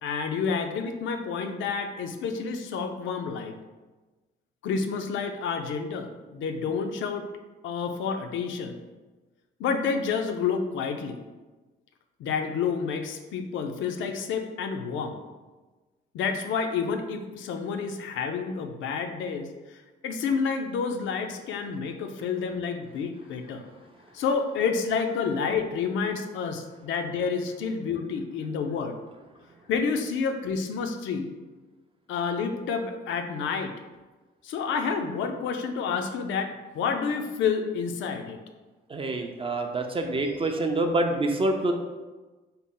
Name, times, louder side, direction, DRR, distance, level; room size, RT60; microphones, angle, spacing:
voice 1, 0.0-3.5 4.6-7.2 7.6-8.8 9.6-11.2 12.2-15.2 16.1-23.6 24.1-29.0 29.7-31.3 32.1-33.7 34.4-38.4, left 5 dB, 80° left, 6 dB, 0.4 m, -29 dB
voice 2, 38.9-41.7, right 2 dB, 25° right, 4 dB, 0.4 m, -26 dB
4.0 x 2.0 x 3.6 m, 1.2 s
cardioid pair, 90°, 20 cm